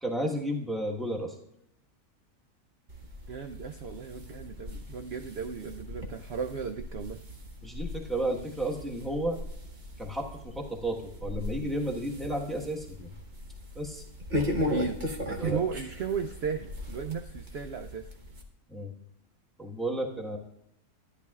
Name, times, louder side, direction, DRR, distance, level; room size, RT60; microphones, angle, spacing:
voice 1, 0.0-1.3 7.6-9.4 10.0-13.1 13.7-14.0 15.4-15.6 18.7-18.9 19.6-20.4, right 1 dB, ahead, -1 dB, 1.1 m, -32 dB
sound 1, 2.9-18.4, left 1 dB, 35° right, 1.0 m, -38 dB
voice 2, 3.3-7.2 14.6-15.0 15.3-18.1, right 6 dB, 65° right, 6 dB, 0.6 m, -35 dB
13.5 x 10.5 x 2.4 m, 0.76 s
omnidirectional pair, 1.7 m